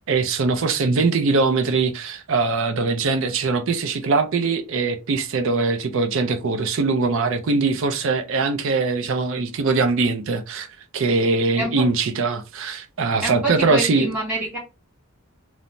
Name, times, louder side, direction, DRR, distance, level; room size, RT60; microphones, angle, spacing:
voice 1, 0.0-10.7 10.9-14.1, right 4 dB, 60° right, 0.4 m, -22 dB
voice 2, 13.2-14.6, right 1 dB, 5° right, 1.5 m, -26 dB
3.1 x 2.0 x 2.5 m
head